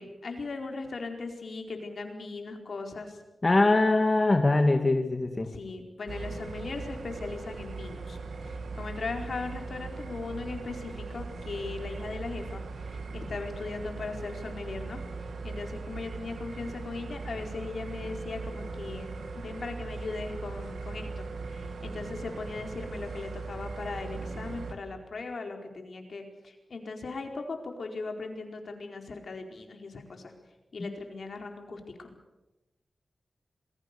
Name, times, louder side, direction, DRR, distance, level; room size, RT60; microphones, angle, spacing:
voice 1, 0.0-3.2 5.5-8.2 8.4-15.0 15.4-30.3 30.7-32.1, left 3 dB, 65° left, 3 dB, 4.5 m, -38 dB
voice 2, 3.4-5.5 30.8-30.9, left 2 dB, 30° left, 5 dB, 1.9 m, -23 dB
sound 1, 6.1-24.7, right 3 dB, 90° right, 2.6 m, -39 dB
27.0 x 21.5 x 6.9 m, 1.0 s
wide cardioid pair, 90°, 0 cm